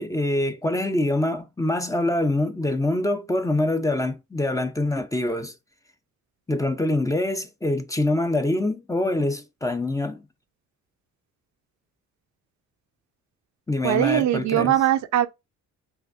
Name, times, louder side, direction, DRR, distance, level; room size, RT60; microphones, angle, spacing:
voice 1, 0.0-5.5 6.5-10.3 13.7-14.7, left 1 dB, 10° left, 0.6 m, -25 dB
voice 2, 13.8-15.3, right 12 dB, 70° right, 0.7 m, -21 dB
5.7 x 2.6 x 2.5 m
cardioid pair, 90°, 30 cm